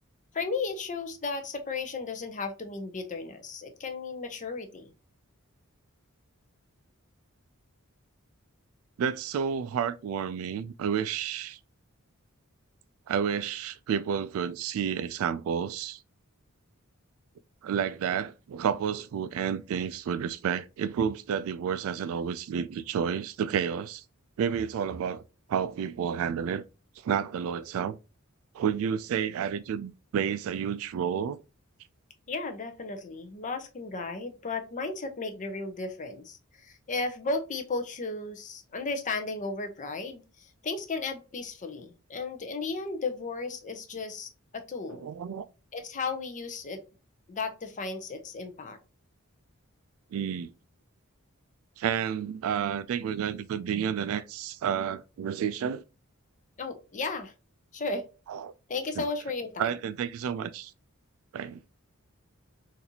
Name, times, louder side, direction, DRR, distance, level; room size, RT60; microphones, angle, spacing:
voice 1, 0.3-4.9 32.3-45.0 45.7-46.8 47.3-48.8 56.6-57.3 57.7-58.1 58.7-59.7, left 3 dB, 35° left, 0.6 m, -34 dB
voice 2, 9.0-11.6 13.1-16.0 17.6-24.0 24.4-25.2 25.5-26.6 27.0-28.0 28.5-31.4 45.0-45.5 50.1-50.5 51.8-55.8 58.3-58.5 59.6-60.7 61.3-61.6, right 7 dB, 70° right, 0.3 m, -30 dB
4.0 x 2.6 x 2.8 m
head